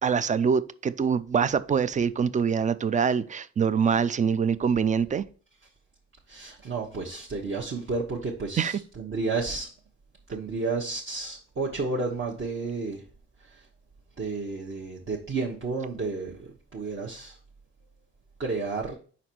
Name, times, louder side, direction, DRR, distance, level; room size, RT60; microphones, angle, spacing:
voice 1, 0.0-5.2 8.6-8.7, right 6 dB, 25° right, 0.4 m, -24 dB
voice 2, 6.3-9.7 10.3-13.0 13.4-13.7 14.2-17.4 18.4-19.0, right 3 dB, 40° right, 1.1 m, -31 dB
5.2 x 4.2 x 4.5 m
cardioid pair, 90°, 30 cm